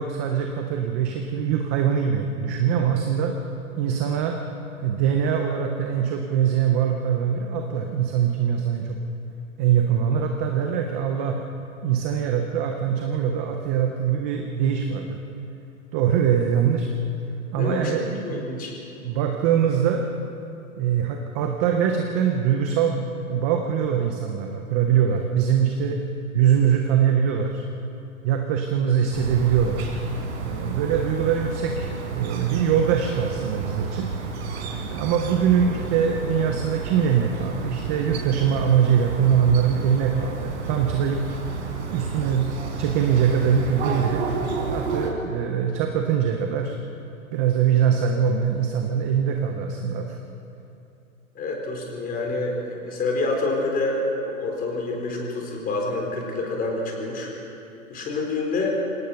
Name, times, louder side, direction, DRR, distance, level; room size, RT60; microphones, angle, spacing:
voice 1, 0.0-3.3 3.8-4.4 4.8-9.0 9.6-11.4 11.8-15.2 15.9-16.9 17.5-18.6 19.0-20.1 20.8-26.0 26.3-27.6 28.2-29.9 30.4-34.1 34.8-41.2 41.9-42.5 42.8-44.2 44.7-46.8 47.3-50.2, right 8 dB, 10° right, 3 dB, 0.4 m, -23 dB
voice 2, 17.6-18.7 51.3-57.3 57.9-58.8, left 2 dB, 20° left, 0 dB, 4.3 m, -27 dB
sound 1, 29.1-45.1, right 4 dB, 50° right, 4.1 m, -31 dB
26.0 x 17.5 x 5.7 m, 2.8 s
hypercardioid pair, 130°, 42 cm